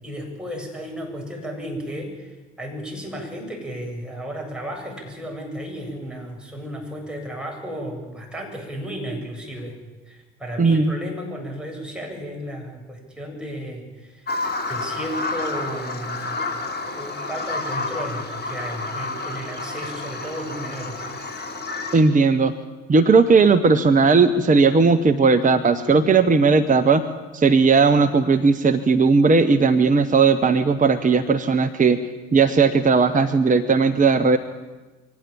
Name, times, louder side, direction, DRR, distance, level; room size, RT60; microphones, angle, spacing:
voice 1, 0.0-9.8 10.1-14.3 14.7-16.4 16.8-21.1, equal, ahead, -1 dB, 8.0 m, -33 dB
voice 2, 10.6-10.9 21.9-22.5 22.9-27.0 27.3-32.0 32.3-34.4, right 4 dB, 20° right, 9 dB, 1.3 m, -17 dB
Bird vocalization bird call bird song, 14.3-22.0, left 3 dB, 25° left, 4.4 m, -30 dB
24.0 x 17.0 x 8.9 m, 1.2 s
figure-of-eight pair, 60°, 37 cm